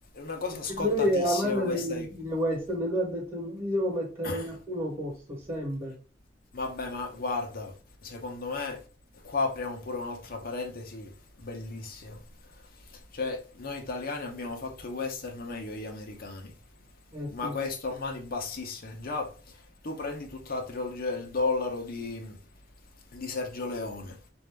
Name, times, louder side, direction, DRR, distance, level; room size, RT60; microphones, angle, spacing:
voice 1, 0.1-2.1 4.2-4.5 6.5-7.7 8.0-8.8 9.2-11.1 11.4-12.2 12.9-16.5 17.3-19.3 19.8-22.4 23.1-24.2, left 3 dB, 55° left, 0.8 m, -34 dB
voice 2, 0.7-5.9 17.1-17.6, equal, 30° right, 1.2 m, -30 dB
4.1 x 2.6 x 3.4 m
head